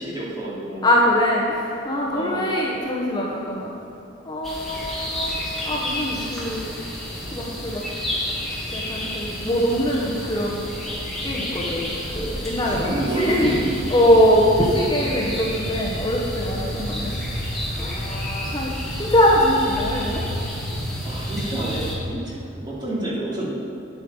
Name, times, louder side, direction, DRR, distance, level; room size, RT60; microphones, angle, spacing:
voice 1, 0.0-0.9 2.1-2.5 12.6-13.7 21.0-23.6, right 1 dB, 25° right, -7 dB, 2.5 m, -28 dB
voice 2, 0.8-3.7 4.3-5.4 5.6-6.6 7.3-7.8 8.7-10.7 11.2-12.9 13.2-13.5 13.9-17.1 17.8-18.7 19.0-20.2, equal, 20° left, -4 dB, 1.0 m, -22 dB
sound 1, 4.4-21.9, equal, ahead, 2.0 m, -30 dB
9.7 x 8.3 x 5.4 m, 2.8 s
head